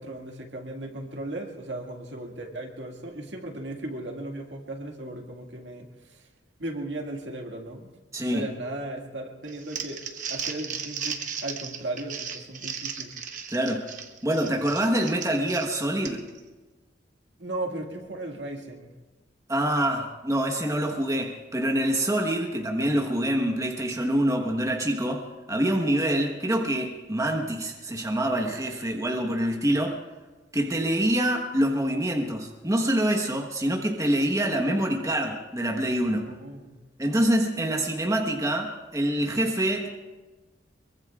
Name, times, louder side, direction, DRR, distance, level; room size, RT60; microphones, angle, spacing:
voice 1, 0.0-6.3 6.6-7.9 8.3-10.0 10.3-13.2 17.4-19.0 36.2-36.8, right 1 dB, 75° right, 2 dB, 2.0 m, -36 dB
voice 2, 8.1-8.5 13.5-13.9 14.2-16.3 19.5-30.0 30.5-36.3 37.0-39.9, right 1 dB, 15° right, 1 dB, 1.2 m, -26 dB
Crumpling crinkling, 9.5-16.4, right 7 dB, 45° right, 1.0 m, -36 dB
24.0 x 23.0 x 2.4 m, 1.3 s
head